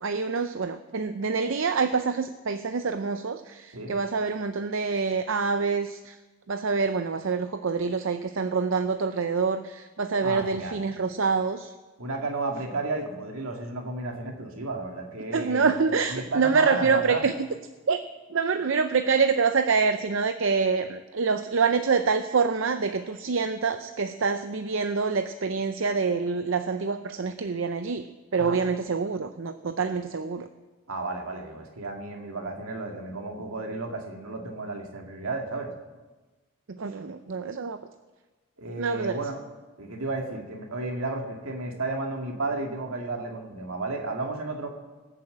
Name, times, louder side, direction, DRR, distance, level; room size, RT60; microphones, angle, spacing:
voice 1, 0.0-6.2 6.5-11.7 15.3-17.3 17.9-18.0 18.3-30.5 36.7-37.8 38.8-39.2, right 5 dB, 65° right, 9 dB, 0.6 m, -26 dB
voice 2, 10.2-10.8 12.0-15.7 16.1-17.2 28.4-28.6 30.9-35.7 38.6-39.4 39.8-44.7, right 2 dB, 80° right, 2 dB, 2.2 m, -32 dB
19.5 x 7.3 x 7.8 m, 1.2 s
head